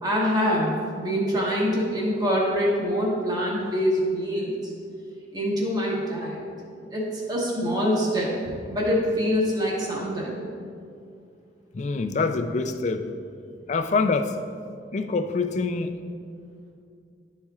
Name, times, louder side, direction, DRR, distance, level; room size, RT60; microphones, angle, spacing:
voice 1, 0.0-4.7 5.3-6.4 6.9-10.4, equal, 25° right, -4 dB, 1.2 m, -25 dB
voice 2, 11.7-13.2 13.7-14.4 14.9-16.0, left 4 dB, 40° left, 8 dB, 0.4 m, -25 dB
11.5 x 4.3 x 2.4 m, 2.4 s
head